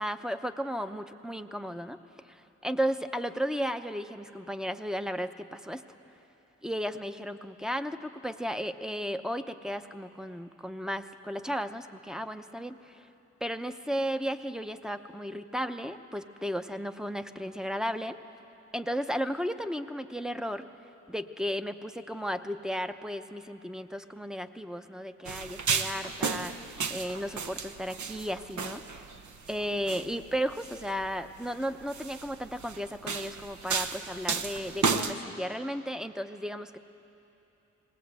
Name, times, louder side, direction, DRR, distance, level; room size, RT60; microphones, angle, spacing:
voice 1, 0.0-2.0 2.3-5.8 6.6-13.1 13.4-18.2 18.7-20.7 21.1-29.1 29.5-36.8, equal, ahead, 9 dB, 0.7 m, -34 dB
sound 1, 25.3-35.1, right 5 dB, 75° right, 0.9 m, -34 dB
20.0 x 18.5 x 8.2 m, 3.0 s
cardioid pair, 70°, 30 cm